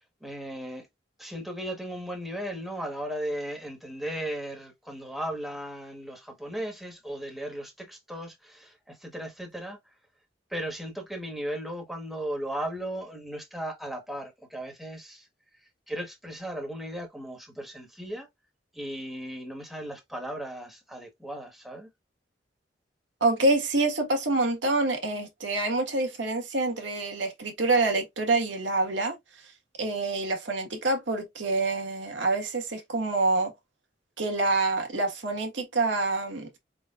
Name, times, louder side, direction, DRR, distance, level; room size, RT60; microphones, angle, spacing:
voice 1, 0.2-0.9 1.2-9.8 10.5-15.3 15.9-18.3 18.7-21.9, right 1 dB, ahead, 1.2 m, -36 dB
voice 2, 23.2-29.1 29.8-33.5 34.2-36.5, right 2 dB, 90° right, 1.6 m, -26 dB
4.9 x 3.7 x 2.4 m
head